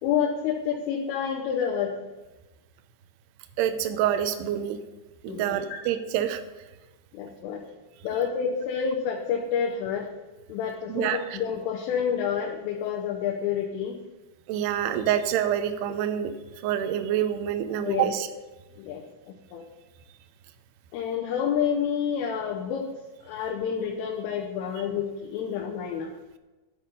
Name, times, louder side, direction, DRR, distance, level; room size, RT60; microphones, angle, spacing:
voice 1, 0.0-2.1 5.3-5.8 7.1-7.6 8.0-10.1 10.5-14.0 17.7-18.2 18.8-19.7 20.9-22.9 23.2-26.1, left 7 dB, 85° left, 0 dB, 3.6 m, -29 dB
voice 2, 3.6-4.8 5.2-6.4 10.9-11.4 14.5-16.3 16.6-18.3, right 10 dB, 80° right, 8 dB, 2.5 m, -26 dB
10.5 x 8.5 x 5.4 m, 1.2 s
omnidirectional pair, 5.6 m